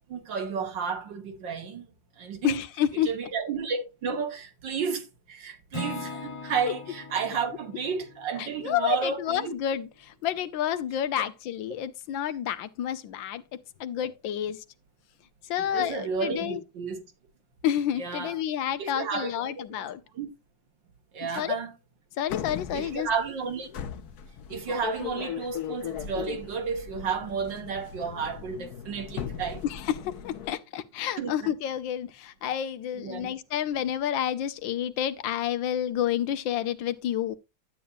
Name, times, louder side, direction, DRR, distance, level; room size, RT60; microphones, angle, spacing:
voice 1, 0.1-1.9 2.2-2.6 3.1-9.5 11.2-11.3 15.6-17.0 18.0-18.3 18.8-19.7 20.1-20.3 21.1-21.7 22.7-23.7 24.5-29.6 31.2-31.5 32.9-33.3, right 5 dB, 75° right, 2.3 m, -32 dB
voice 2, 2.4-3.1 8.4-13.4 13.8-14.6 15.5-16.6 17.6-20.0 21.4-21.6 22.2-23.1 29.6-37.4, left 10 dB, 90° left, 1.6 m, -29 dB
Acoustic guitar / Strum, 5.7-9.8, left 1 dB, 20° left, 0.9 m, -41 dB
sound 1, 22.3-30.5, left 9 dB, 60° left, 1.3 m, -38 dB
11.5 x 8.7 x 2.6 m
omnidirectional pair, 2.0 m